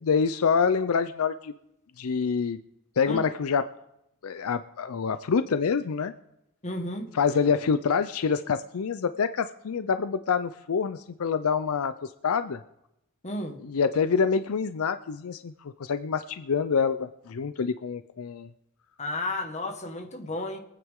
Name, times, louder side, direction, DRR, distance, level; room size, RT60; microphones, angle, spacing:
voice 1, 0.0-1.5 2.0-2.6 3.0-3.6 4.2-6.1 7.1-12.6 13.6-18.5, left 6 dB, 70° left, 11 dB, 0.5 m, -26 dB
voice 2, 6.6-7.1 13.2-13.6 19.0-20.6, left 2 dB, 30° left, 4 dB, 1.6 m, -32 dB
24.0 x 9.2 x 3.7 m, 0.86 s
head